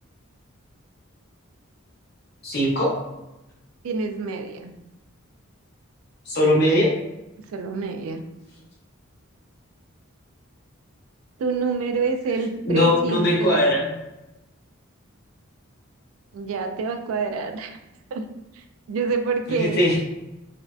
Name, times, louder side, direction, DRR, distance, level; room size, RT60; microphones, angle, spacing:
voice 1, 2.4-2.9 6.3-6.9 12.7-13.9 19.5-20.0, left 1 dB, 50° left, -4 dB, 0.8 m, -20 dB
voice 2, 3.8-4.7 7.5-8.2 11.4-13.6 16.3-17.8 18.1-18.3 18.5-20.0, right 4 dB, 80° right, 5 dB, 0.3 m, -27 dB
2.5 x 2.1 x 2.3 m, 0.94 s
head